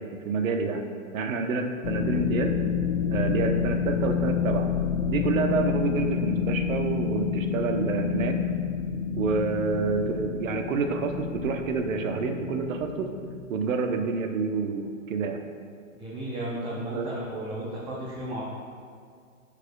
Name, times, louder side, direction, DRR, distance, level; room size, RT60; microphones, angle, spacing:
voice 1, 0.2-0.8 1.1-2.5 3.1-4.7 5.1-8.4 9.2-13.1 13.5-15.4 16.9-17.1, right 4 dB, 70° right, 6 dB, 0.9 m, -28 dB
sound 1, 1.8-13.4, left 7 dB, 65° left, 0.7 m, -29 dB
voice 2, 15.9-18.4, right 1 dB, 10° right, -6 dB, 0.6 m, -34 dB
11.0 x 4.9 x 2.2 m, 2.1 s
hypercardioid pair, 125°, 42 cm